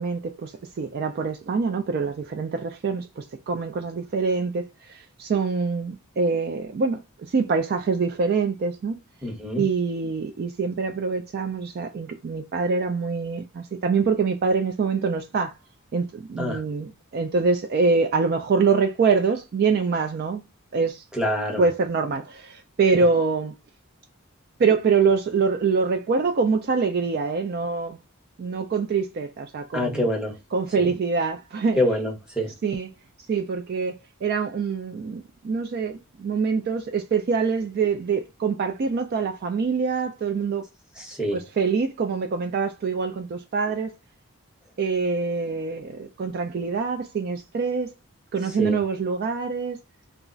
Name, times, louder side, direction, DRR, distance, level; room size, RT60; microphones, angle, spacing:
voice 1, 0.0-7.0 7.3-9.0 9.6-15.5 15.9-20.4 20.7-21.0 21.6-23.5 24.6-28.0 28.4-30.1 30.5-31.8 32.6-32.9 33.3-40.6 41.3-43.9 44.8-47.9 48.3-49.8, right 4 dB, 45° right, 0.3 m, -25 dB
voice 2, 9.2-9.7 16.4-16.6 21.1-21.6 29.7-30.3 31.8-32.5 41.0-41.4 48.6-48.8, left 1 dB, 5° right, 0.8 m, -25 dB
2.3 x 2.1 x 3.7 m
head